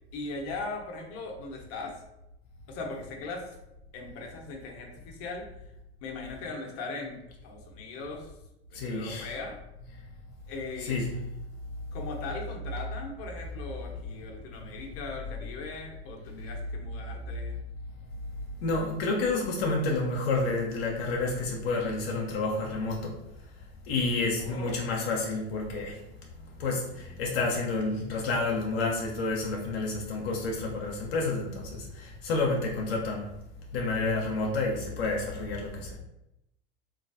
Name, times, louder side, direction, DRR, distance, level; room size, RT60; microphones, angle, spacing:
voice 1, 0.1-2.0 2.7-3.6 3.9-5.5 6.0-8.3 8.7-9.6 10.5-11.0 11.9-17.6 24.4-24.8, left 3 dB, 50° left, 1 dB, 0.8 m, -39 dB
voice 2, 8.7-9.3 10.0-10.1 10.8-11.2 14.6-14.8 18.6-23.2 23.8-26.0 26.6-33.3 33.7-36.0, left 3 dB, 75° left, -1 dB, 0.7 m, -30 dB
3.1 x 2.3 x 2.5 m, 0.86 s
hypercardioid pair, 95°, 30 cm